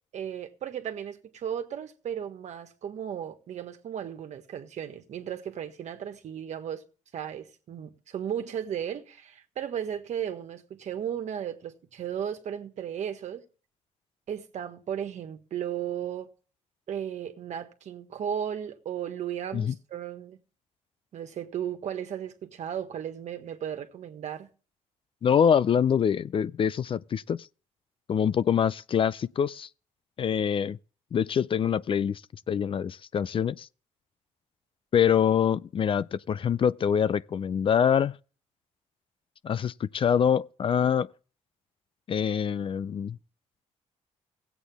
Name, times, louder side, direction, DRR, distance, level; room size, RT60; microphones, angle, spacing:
voice 1, 0.1-6.8 7.1-13.4 14.3-16.3 16.9-20.4 21.1-24.5, right 9 dB, 65° right, 1.5 m, -35 dB
voice 2, 25.2-27.4 28.1-29.7 30.2-30.8 31.1-32.2 32.5-33.7 34.9-38.2 39.4-41.1 42.1-43.2, left 8 dB, 45° left, 0.4 m, -25 dB
16.5 x 8.2 x 3.4 m
cardioid pair, 85°, 13 cm